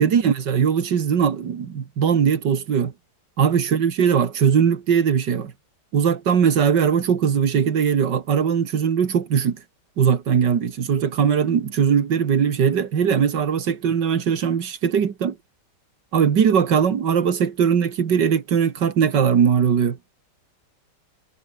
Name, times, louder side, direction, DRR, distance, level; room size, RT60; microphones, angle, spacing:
voice 1, 0.0-2.9 3.4-5.5 5.9-9.6 10.0-15.4 16.1-20.0, right 7 dB, 90° right, 2.3 m, -20 dB
omnidirectional pair, 1.8 m